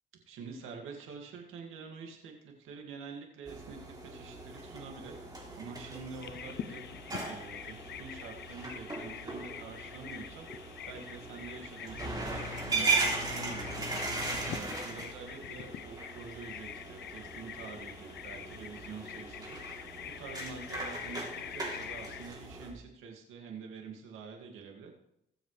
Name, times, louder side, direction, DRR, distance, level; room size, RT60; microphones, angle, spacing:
voice 1, 0.3-6.8 7.2-14.0 14.5-19.9 20.2-24.9, right 5 dB, 90° right, 2 dB, 2.2 m, -47 dB
sound 1, 3.5-22.7, right 3 dB, 20° right, 3.3 m, -38 dB
Bird vocalization bird call bird song, 6.2-22.3, left 10 dB, 60° left, 0.6 m, -45 dB
21.0 x 7.5 x 3.3 m, 0.81 s
cardioid pair, 90°, 20 cm